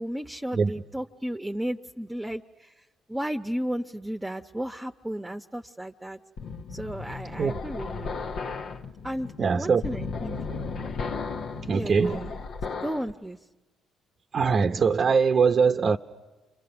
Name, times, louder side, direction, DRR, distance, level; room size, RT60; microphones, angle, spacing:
voice 1, 0.0-2.7 3.1-6.2 6.7-8.2 9.0-9.3 9.6-10.4 11.7-12.3 12.8-13.4, equal, 10° right, 1.0 m, -33 dB
sound 1, 6.4-13.1, left 4 dB, 65° left, 1.1 m, -35 dB
voice 2, 9.4-9.8 11.7-12.3 14.3-16.0, right 5 dB, 45° right, 0.8 m, -22 dB
29.5 x 24.5 x 7.0 m
hypercardioid pair, 55°, 0 cm